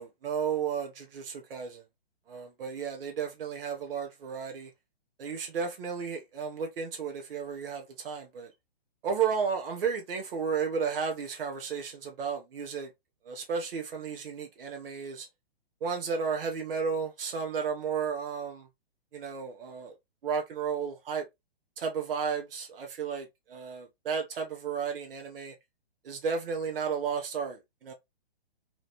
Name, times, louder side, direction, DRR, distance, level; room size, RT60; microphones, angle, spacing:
voice 1, 0.0-1.8 2.3-4.7 5.2-8.5 9.0-12.9 13.3-15.3 15.8-18.7 19.1-19.9 20.2-21.2 21.8-25.5 26.0-27.9, right 6 dB, 65° right, 1.0 m, -33 dB
3.0 x 2.6 x 2.8 m
hypercardioid pair, 135°, 31 cm